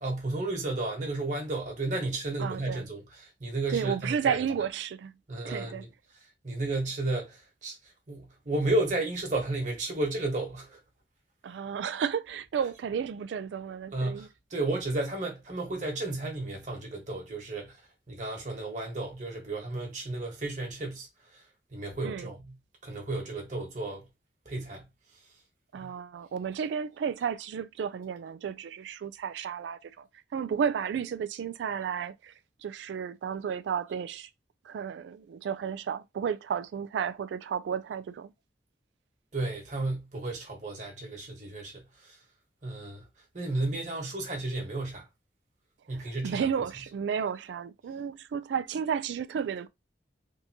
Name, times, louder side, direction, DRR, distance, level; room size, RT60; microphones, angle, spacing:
voice 1, 0.0-4.4 5.3-5.9 6.4-7.8 8.1-10.8 13.9-17.7 18.1-21.1 21.7-22.5 22.8-24.0 24.4-24.8 25.7-25.9 39.3-42.2 42.6-43.1 43.3-45.0 45.9-46.5, right 2 dB, 45° right, 1.3 m, -33 dB
voice 2, 2.4-2.9 3.7-5.1 5.4-5.8 11.4-14.3 22.0-22.3 25.7-30.1 30.3-32.3 32.6-34.3 34.6-38.3 45.9-49.7, right 7 dB, 85° right, 0.3 m, -32 dB
3.6 x 2.7 x 2.8 m
head